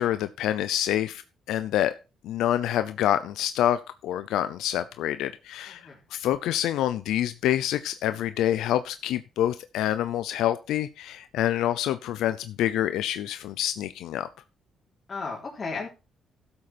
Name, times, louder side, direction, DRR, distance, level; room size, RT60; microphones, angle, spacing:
voice 1, 0.0-1.9 2.2-14.3, left 12 dB, 85° left, 12 dB, 0.6 m, -27 dB
voice 2, 5.7-6.0 15.1-15.9, left 4 dB, 35° left, -4 dB, 3.7 m, -34 dB
12.0 x 7.7 x 4.4 m, 0.31 s
cardioid pair, 90°, 0 cm